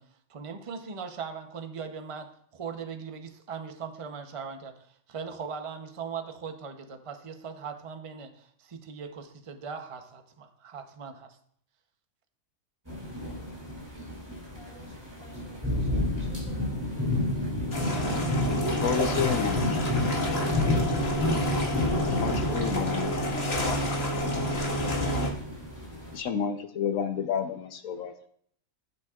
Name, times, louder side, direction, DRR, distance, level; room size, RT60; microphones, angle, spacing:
voice 1, 0.3-11.4, right 6 dB, 30° right, 6 dB, 0.7 m, -39 dB
sound 1, 12.9-26.2, left 1 dB, 15° right, 2.7 m, -30 dB
voice 2, 14.5-17.0 22.3-23.4, right 1 dB, 90° right, -3 dB, 4.0 m, -47 dB
sound 2, 17.7-25.3, equal, 50° left, 1.8 m, -29 dB
voice 3, 18.8-19.8 22.2-23.1 26.1-28.1, left 7 dB, 80° left, 8 dB, 1.3 m, -30 dB
16.5 x 7.4 x 2.4 m, 0.64 s
omnidirectional pair, 1.4 m